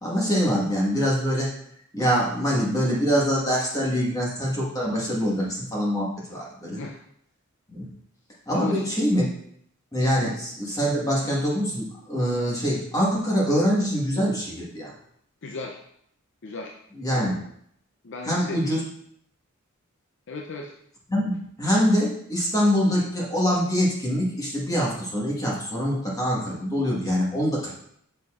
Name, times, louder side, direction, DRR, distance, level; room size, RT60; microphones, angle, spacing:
voice 1, 0.0-1.5 1.9-6.8 7.7-7.9 8.5-9.3 9.9-14.9 17.0-17.4 18.2-18.8 21.1-27.7, equal, 15° left, -4 dB, 1.5 m, -24 dB
voice 2, 6.7-7.0 8.5-8.8 10.2-10.3 15.4-15.8 16.4-16.7 18.0-18.7 20.3-20.7, left 3 dB, 55° left, 1 dB, 0.5 m, -35 dB
6.7 x 6.6 x 2.4 m, 0.70 s
head